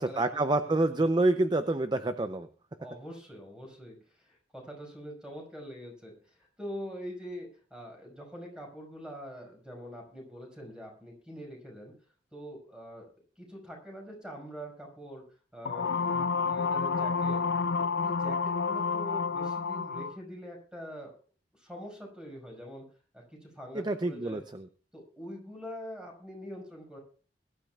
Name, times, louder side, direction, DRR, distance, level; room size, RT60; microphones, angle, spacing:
voice 1, 0.0-2.5 23.7-24.7, right 2 dB, 25° right, 9 dB, 0.6 m, -27 dB
voice 2, 0.6-1.1 2.8-11.9 12.3-13.1 13.4-15.2 15.5-17.4 17.8-21.1 21.6-22.8 23.1-24.4 24.9-27.0, equal, 5° right, 0 dB, 5.6 m, -44 dB
sound 1, 15.7-20.2, left 5 dB, 70° left, 0.5 m, -29 dB
22.0 x 12.0 x 2.4 m, 0.40 s
head